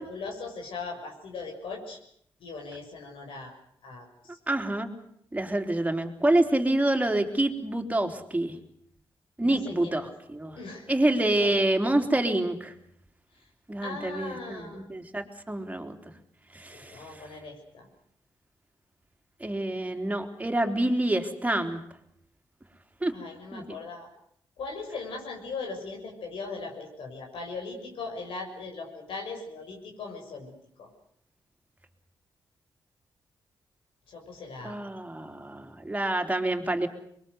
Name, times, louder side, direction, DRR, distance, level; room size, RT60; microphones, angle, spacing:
voice 1, 0.0-2.0 2.4-3.5 3.8-4.4 9.4-10.1 10.6-10.9 11.2-11.5 13.8-14.9 16.7-17.9 23.1-24.1 24.6-30.5 30.8-30.9 34.1-34.8, left 4 dB, 80° left, 1 dB, 6.5 m, -39 dB
voice 2, 4.5-4.9 5.3-8.6 9.4-10.6 10.9-12.7 13.7-16.1 16.5-17.3 19.4-21.8 23.0-23.1 23.5-23.8 34.6-36.9, right 1 dB, 15° right, 4 dB, 3.6 m, -27 dB
24.0 x 22.0 x 8.2 m, 0.69 s
cardioid pair, 65°, 9 cm